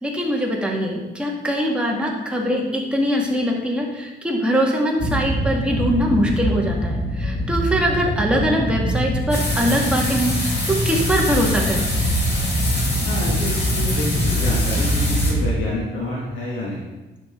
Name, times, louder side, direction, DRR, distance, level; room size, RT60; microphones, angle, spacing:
voice 1, 0.0-11.9, equal, 5° right, -1 dB, 1.9 m, -22 dB
sound 1, 5.0-15.5, equal, 35° left, 2.2 m, -23 dB
sound 2, 9.3-15.3, left 1 dB, 55° left, 3.0 m, -27 dB
voice 2, 13.0-16.8, left 2 dB, 80° left, -6 dB, 2.2 m, -28 dB
10.0 x 6.4 x 3.8 m, 1.1 s
cardioid pair, 90°, 20 cm